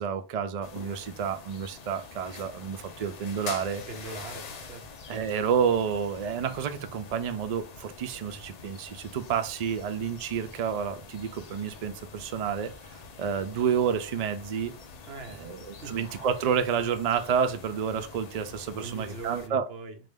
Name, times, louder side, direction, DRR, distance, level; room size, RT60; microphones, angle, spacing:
voice 1, 0.0-3.8 5.1-14.7 15.3-19.7, right 7 dB, 80° right, 0.3 m, -30 dB
sound 1, 0.6-19.5, left 5 dB, 55° left, 0.4 m, -46 dB
voice 2, 3.9-4.9 15.1-15.9 18.8-20.0, right 4 dB, 60° right, 0.9 m, -41 dB
4.1 x 2.5 x 3.5 m
omnidirectional pair, 1.3 m